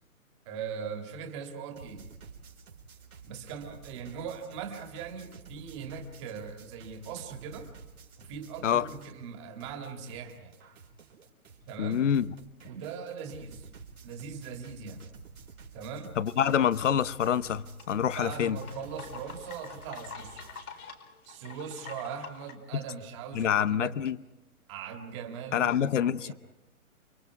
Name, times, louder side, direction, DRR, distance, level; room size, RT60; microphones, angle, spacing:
voice 1, 0.5-2.1 3.2-7.7 8.2-10.6 11.7-12.0 12.6-13.7 14.0-15.1 15.7-16.1 18.2-20.4 21.3-24.0 24.7-25.7 26.0-26.3, right 6 dB, 20° right, 2.4 m, -40 dB
sound 1, 1.8-9.3 9.6-20.6, right 5 dB, 80° right, 4.2 m, -51 dB
voice 2, 11.8-12.3 16.2-18.6 23.3-24.2 25.5-26.3, left 9 dB, 60° left, 0.9 m, -26 dB
sound 2, 17.1-22.5, left 6 dB, 90° left, 4.5 m, -46 dB
29.0 x 25.5 x 4.8 m
hypercardioid pair, 170°, 43 cm